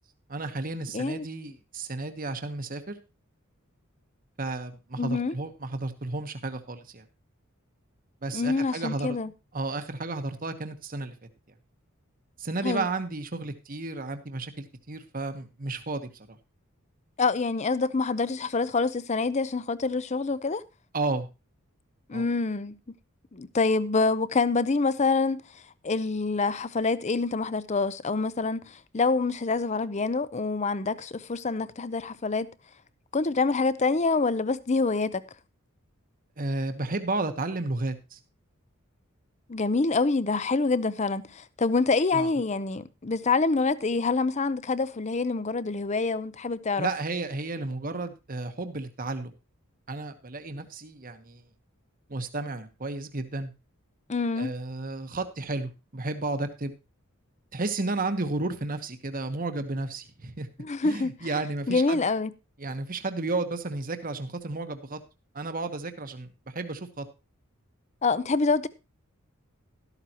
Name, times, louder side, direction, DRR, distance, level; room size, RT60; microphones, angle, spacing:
voice 1, 0.3-3.0 4.4-7.0 8.2-9.2 9.5-11.2 12.4-16.4 20.9-21.3 22.1-22.2 36.4-38.2 42.1-42.3 46.8-49.3 49.9-51.4 52.1-53.5 54.4-56.7 57.5-60.5 60.8-62.0 62.6-65.0 65.3-67.1, right 2 dB, 40° right, 1.1 m, -32 dB
voice 2, 0.9-1.3 5.0-5.3 8.3-9.3 12.6-12.9 17.2-20.6 22.1-23.0 23.3-25.4 25.8-32.5 33.1-35.2 39.5-46.9 54.1-54.5 60.6-61.1 61.7-62.3 68.0-68.7, left 3 dB, 35° left, 0.6 m, -26 dB
12.5 x 12.5 x 3.0 m
head